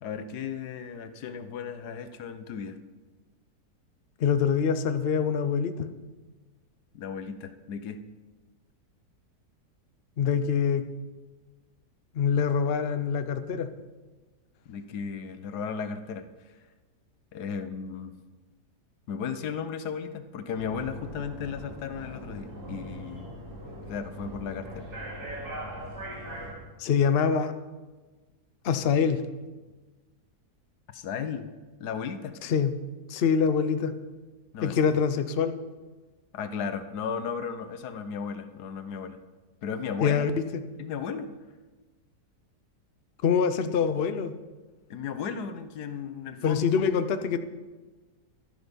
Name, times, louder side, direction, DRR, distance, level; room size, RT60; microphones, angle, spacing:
voice 1, 0.0-2.8 6.9-8.0 14.7-16.6 17.3-18.1 19.1-23.3 23.9-24.9 30.9-31.5 31.8-32.4 34.5-34.8 36.3-39.2 39.6-40.2 40.8-41.3 44.9-46.7, left 6 dB, 75° left, 10 dB, 1.3 m, -35 dB
voice 2, 4.2-5.9 10.2-10.8 12.1-13.7 26.8-27.5 28.6-29.2 32.4-32.7 33.1-33.9 34.6-35.5 40.0-40.3 43.2-44.3 46.4-47.4, left 6 dB, 55° left, 9 dB, 0.7 m, -24 dB
sound 1, 20.5-26.5, right 1 dB, 75° right, 3.2 m, -40 dB
12.0 x 10.5 x 5.2 m, 1.3 s
omnidirectional pair, 1.7 m